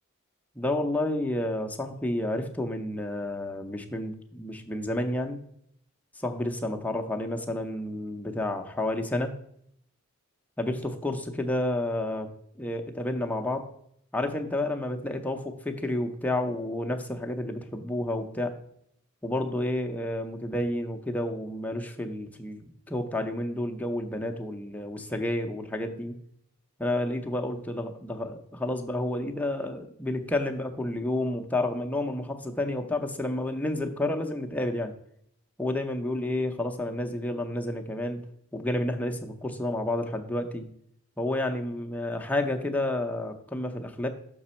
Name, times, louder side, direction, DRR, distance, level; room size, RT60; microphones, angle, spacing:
voice 1, 0.6-5.4 6.2-9.4 10.6-12.3 12.6-13.7 14.1-18.6 19.2-26.1 26.8-34.9 35.6-38.2 38.5-40.7 41.2-44.1, left 1 dB, 5° left, 3 dB, 0.6 m, -30 dB
6.1 x 6.0 x 4.2 m, 0.69 s
head